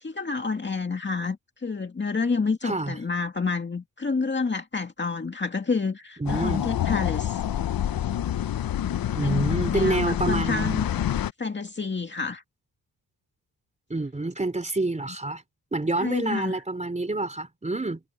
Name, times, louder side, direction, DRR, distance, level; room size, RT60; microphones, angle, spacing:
voice 1, 0.0-7.4 9.1-11.0 11.4-12.4 16.0-16.6, left 4 dB, 30° left, 2.2 m, -29 dB
voice 2, 2.6-3.0 6.2-6.6 9.1-10.8 13.9-15.4 15.7-18.0, right 2 dB, 20° right, 3.7 m, -27 dB
sound 1, 6.3-11.3, left 11 dB, 60° left, 0.7 m, -27 dB
wide cardioid pair, 130°, 39 cm